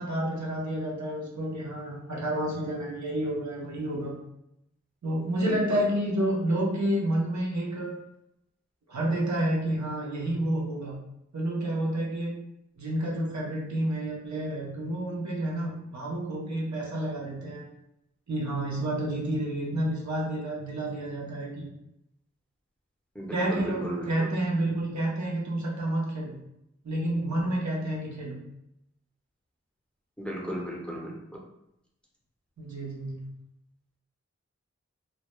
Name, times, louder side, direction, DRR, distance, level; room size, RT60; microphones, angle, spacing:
voice 1, 0.0-4.1 5.0-7.9 8.9-10.9 11.3-12.3 12.8-17.6 18.3-21.7 23.3-26.3 26.8-28.4 32.6-33.3, right 1 dB, 75° right, -4 dB, 0.7 m, -29 dB
voice 2, 5.5-5.8 23.2-24.1 30.2-31.2, equal, 5° left, -2 dB, 0.5 m, -35 dB
2.2 x 2.1 x 2.9 m, 0.83 s
wide cardioid pair, 45°, 29 cm